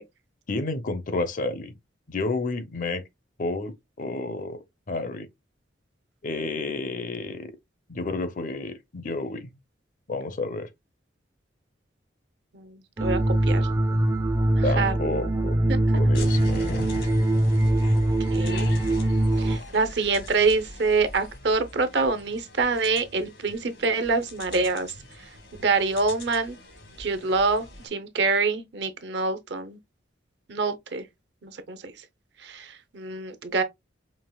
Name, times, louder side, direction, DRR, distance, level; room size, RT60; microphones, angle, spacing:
voice 1, 0.5-1.7 2.1-3.0 3.4-4.6 4.9-5.3 6.2-7.5 7.9-9.6 10.1-10.7 14.6-15.6 16.0-16.9, left 2 dB, 45° left, 0.6 m, -30 dB
voice 2, 12.5-13.7 14.8-14.9 15.7-15.8 18.3-18.7 19.4-24.9 25.6-26.6 27.0-29.8 30.5-31.0 31.4-31.9 32.4-33.6, right 4 dB, 65° right, 0.6 m, -26 dB
sound 1, 13.0-19.6, right 1 dB, 15° right, 0.4 m, -22 dB
sound 2, 16.1-27.9, left 2 dB, 80° left, 1.6 m, -41 dB
5.3 x 2.8 x 2.2 m
head